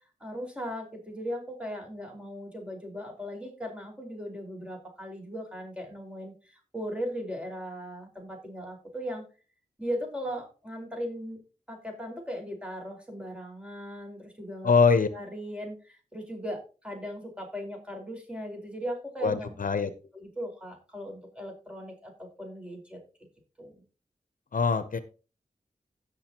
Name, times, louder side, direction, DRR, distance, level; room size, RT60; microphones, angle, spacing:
voice 1, 0.2-9.2 9.8-11.4 11.7-14.7 15.1-19.5 20.1-23.0 23.6-23.8, equal, 5° right, 4.8 m, -38 dB
voice 2, 14.6-15.1 19.2-19.9 24.5-25.0, left 5 dB, 65° left, 0.8 m, -23 dB
17.0 x 6.6 x 3.0 m
cardioid pair, 45°, 15 cm